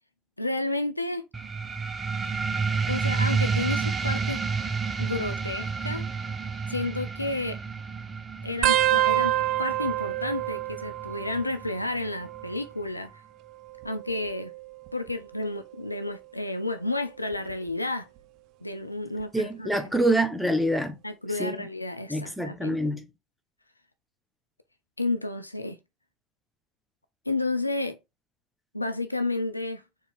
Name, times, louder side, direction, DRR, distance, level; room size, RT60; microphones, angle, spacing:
voice 1, 0.4-1.2 2.9-4.4 5.0-6.0 6.7-7.6 8.4-9.3 9.6-13.1 13.8-14.5 14.9-18.1 18.6-19.8 21.0-22.8 25.0-25.8 27.3-28.0 28.7-29.8, left 2 dB, 90° left, 0.4 m, -31 dB
sound 1, 1.3-12.4, right 5 dB, 25° right, 0.7 m, -30 dB
sound 2, 8.6-11.8 12.1-12.7 13.7-15.2 15.8-16.1 17.3-17.7 19.2-19.3, right 14 dB, 55° right, 0.3 m, -28 dB
voice 2, 19.3-21.0 21.4-21.7 22.1-23.1, right 1 dB, ahead, 1.1 m, -26 dB
4.4 x 3.4 x 3.2 m
figure-of-eight pair, 65°, 0 cm